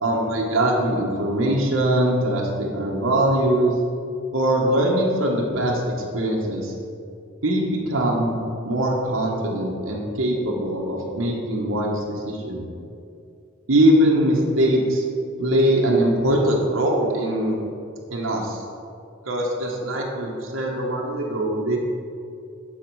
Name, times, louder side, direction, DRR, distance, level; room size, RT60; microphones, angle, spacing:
voice 1, 0.0-3.7 4.3-6.7 7.4-12.7 13.7-15.0 15.4-17.6 18.1-18.6 19.3-21.8, right 1 dB, 75° right, -2 dB, 1.2 m, -22 dB
11.0 x 4.3 x 4.7 m, 2.4 s
head